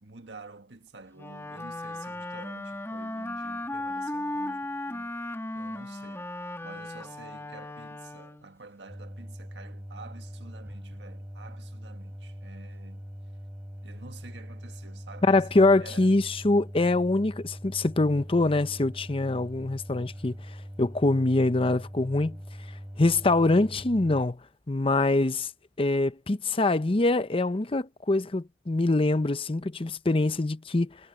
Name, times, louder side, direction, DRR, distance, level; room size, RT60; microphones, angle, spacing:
voice 1, 0.0-6.3 6.6-13.0 13.8-16.1, right 3 dB, 80° right, 1.7 m, -49 dB
Wind instrument woodwind instrument, 1.1-8.6, left 1 dB, 15° left, 1.4 m, -36 dB
sound 1, 8.9-24.2, equal, 15° right, 7.6 m, -42 dB
voice 2, 15.2-20.4 20.8-22.4 23.0-24.4 24.7-25.5 25.8-31.0, left 2 dB, 30° left, 0.7 m, -24 dB
head